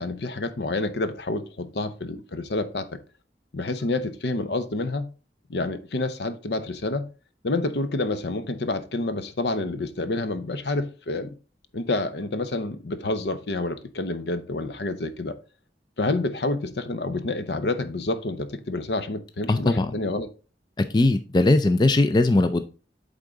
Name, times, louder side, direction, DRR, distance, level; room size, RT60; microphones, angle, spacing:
voice 1, 0.0-3.0 3.5-5.1 5.5-7.1 7.4-11.3 11.7-15.4 16.0-20.3, left 2 dB, 70° left, 0.7 m, -28 dB
voice 2, 19.5-19.9 20.9-22.6, left 2 dB, 25° left, 0.3 m, -19 dB
8.3 x 3.7 x 3.8 m
head